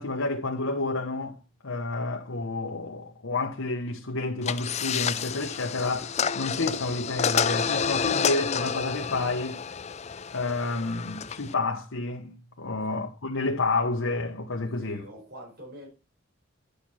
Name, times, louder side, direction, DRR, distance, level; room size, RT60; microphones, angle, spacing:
voice 1, 0.0-1.4 1.6-9.6 10.3-15.0, left 3 dB, 85° left, 1.2 m, -30 dB
sound 1, 4.4-11.5, left 7 dB, 35° left, 0.5 m, -29 dB
voice 2, 14.8-15.9, equal, 50° right, 4.6 m, -44 dB
10.5 x 6.8 x 4.2 m
head